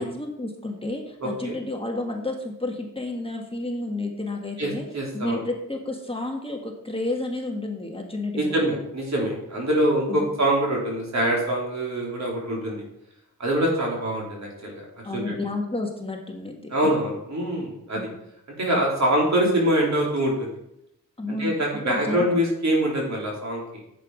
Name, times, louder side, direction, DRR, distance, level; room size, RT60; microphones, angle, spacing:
voice 1, 0.0-4.8 5.1-8.7 10.1-10.3 15.0-17.0 18.0-18.1 21.2-21.5 21.9-22.2, left 2 dB, 15° left, 1 dB, 1.5 m, -31 dB
voice 2, 1.2-1.5 4.6-5.4 8.4-12.8 13.4-14.8 15.1-15.3 16.7-18.1 18.6-20.5 21.3-23.6, right 1 dB, 55° right, -2 dB, 3.9 m, -24 dB
11.0 x 8.0 x 5.0 m, 0.79 s
wide cardioid pair, 125°, 34 cm